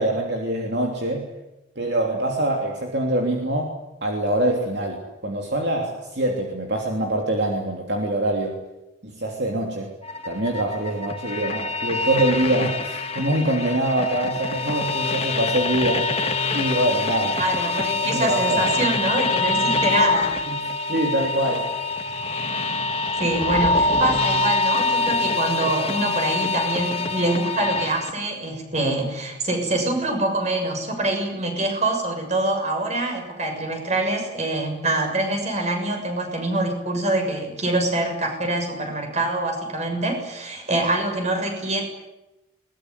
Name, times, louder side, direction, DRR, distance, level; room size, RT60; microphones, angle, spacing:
voice 1, 0.0-1.3 1.7-3.7 4.0-8.6 9.0-9.9 10.2-16.1 16.5-17.4 18.1-18.6 20.5-21.7, right 1 dB, 60° right, 1 dB, 3.3 m, -24 dB
sound 1, 10.0-28.1, left 3 dB, 30° left, 1.7 m, -25 dB
voice 2, 17.4-20.4 23.2-41.8, right 2 dB, 35° right, 4 dB, 6.8 m, -25 dB
22.0 x 21.0 x 9.9 m, 0.97 s
head